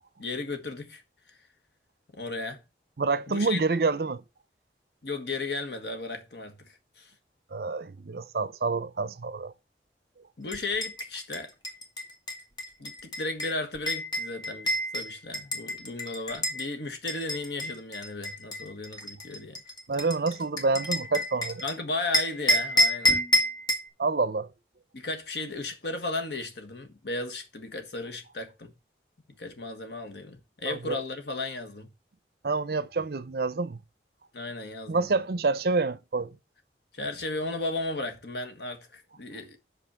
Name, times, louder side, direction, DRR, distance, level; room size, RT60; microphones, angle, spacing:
voice 1, 0.2-1.0 1.3-1.4 2.1-2.6 3.3-3.6 5.0-6.7 7.0-7.1 10.4-11.5 12.8-19.6 21.6-23.2 24.9-28.7 29.4-31.9 34.3-35.1 36.9-39.6, left 2 dB, 75° left, 1.4 m, -35 dB
voice 2, 3.0-4.2 7.5-9.5 19.9-21.6 24.0-24.5 30.6-31.0 32.4-33.8 34.9-36.4, right 3 dB, 60° right, 0.5 m, -27 dB
sound 1, 10.5-16.7 17.1-21.7 22.1-23.9, equal, 25° left, 1.5 m, -29 dB
6.2 x 5.5 x 7.0 m
head